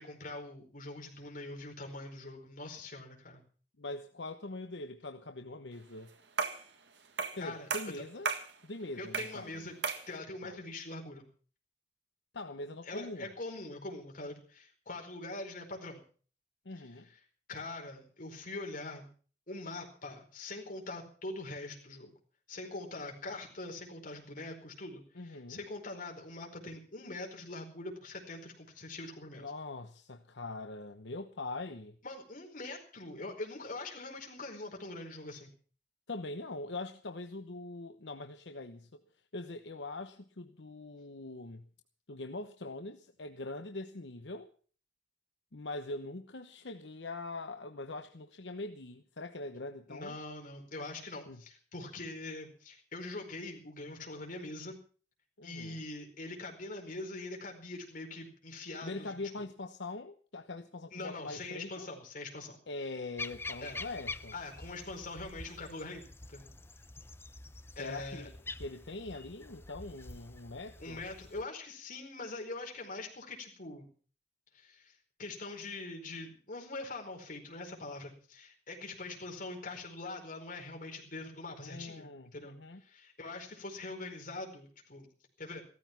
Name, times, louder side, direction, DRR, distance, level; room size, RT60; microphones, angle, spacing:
voice 1, 0.0-3.4 7.4-7.7 9.0-9.8 10.1-11.3 12.8-16.0 17.1-17.2 17.5-19.1 19.5-22.1 22.5-29.5 32.0-35.5 49.9-54.8 55.4-59.1 60.9-62.6 63.6-63.8 64.3-66.5 67.7-68.3 70.8-73.9 74.5-85.1 85.4-85.6, left 2 dB, 50° left, 4.8 m, -43 dB
voice 2, 3.8-6.1 7.3-8.3 8.6-9.7 10.4-10.6 12.3-13.3 16.6-17.1 25.1-25.6 29.3-32.0 36.1-39.0 39.3-41.7 42.1-44.5 45.5-50.2 51.3-51.4 55.4-55.8 58.8-61.9 62.7-64.3 67.8-68.3 68.6-71.0 81.6-82.8, left 2 dB, 80° left, 1.0 m, -42 dB
sound 1, 6.4-6.7 7.2-7.4 7.7-8.5 9.1-9.4 9.8-10.1, right 5 dB, 80° right, 1.7 m, -34 dB
sound 2, 63.2-71.4, left 3 dB, 15° left, 0.6 m, -46 dB
16.0 x 14.0 x 5.9 m
head